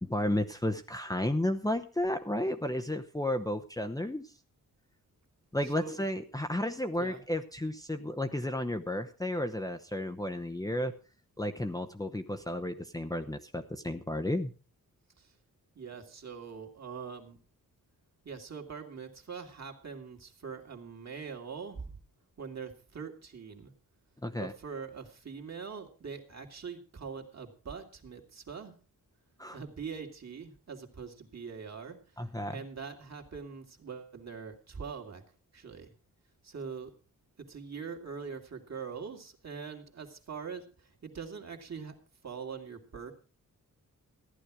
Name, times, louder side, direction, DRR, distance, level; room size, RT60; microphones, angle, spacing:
voice 1, 0.0-4.3 5.5-10.9 11.4-14.5 24.2-24.5 29.4-29.6 32.2-32.6, left 1 dB, 10° left, 5 dB, 0.8 m, -33 dB
voice 2, 15.8-17.4 18.2-21.9 22.4-23.7 24.4-28.7 29.5-32.0 32.5-35.2 35.5-35.9 36.4-36.9 37.4-42.0 42.2-43.1, right 6 dB, 50° right, 3 dB, 2.5 m, -43 dB
14.5 x 11.0 x 4.9 m, 0.35 s
wide cardioid pair, 110°, 35 cm